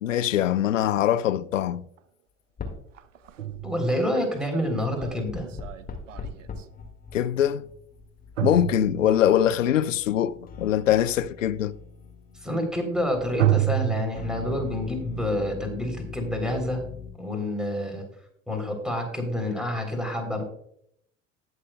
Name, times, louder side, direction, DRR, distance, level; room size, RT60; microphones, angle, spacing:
voice 1, 0.0-1.8 7.1-7.6 8.4-11.7, left 11 dB, 80° left, 0.5 m, -23 dB
sound 1, 2.0-2.1 3.0-6.6 8.4-9.5 13.4-14.0, right 14 dB, 80° right, 0.6 m, -28 dB
sound 2, 2.6-2.9 3.2-3.9 4.7-13.5 14.2-17.1, left 5 dB, 25° left, 2.0 m, -41 dB
voice 2, 3.6-5.5 12.4-16.9 17.2-18.1 18.5-20.4, left 1 dB, ahead, 3.4 m, -28 dB
19.5 x 6.6 x 2.3 m
figure-of-eight pair, 65°, 38 cm